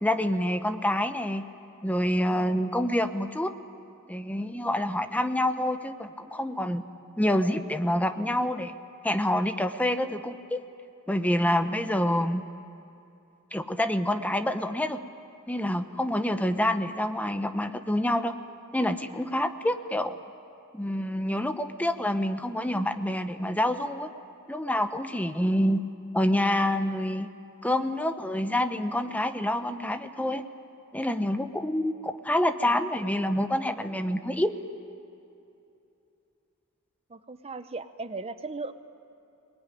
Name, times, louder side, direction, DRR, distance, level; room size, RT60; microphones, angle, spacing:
voice 1, 0.0-1.4 1.8-3.5 4.1-6.8 7.2-8.7 9.0-10.6 11.1-12.4 13.5-15.0 15.5-18.3 18.7-20.2 20.7-24.1 24.5-25.8 26.1-27.3 27.6-30.4 30.9-34.5, left 1 dB, 5° left, 9 dB, 0.8 m, -27 dB
voice 2, 37.1-38.7, right 3 dB, 30° right, 11 dB, 0.8 m, -37 dB
26.0 x 20.5 x 10.0 m, 2.7 s
head